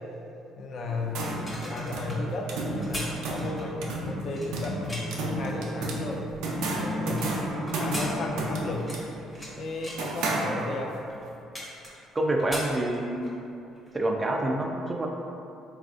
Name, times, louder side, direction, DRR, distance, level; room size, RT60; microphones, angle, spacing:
voice 1, 0.6-6.2 6.8-8.9 9.6-11.0, left 2 dB, 50° left, 0 dB, 0.5 m, -34 dB
sound 1, 0.9-11.0, right 1 dB, 85° right, 0.5 m, -32 dB
sound 2, 1.5-5.3 5.8-7.3 7.7-9.5 9.8-10.1 10.7-10.8 11.1-12.1 12.4-13.4 13.8-13.9, left 1 dB, 20° left, 0.9 m, -39 dB
voice 2, 12.1-13.4 13.9-15.1, right 1 dB, 20° right, 1 dB, 0.3 m, -27 dB
4.0 x 2.5 x 3.6 m, 2.8 s
cardioid pair, 120°, 0 cm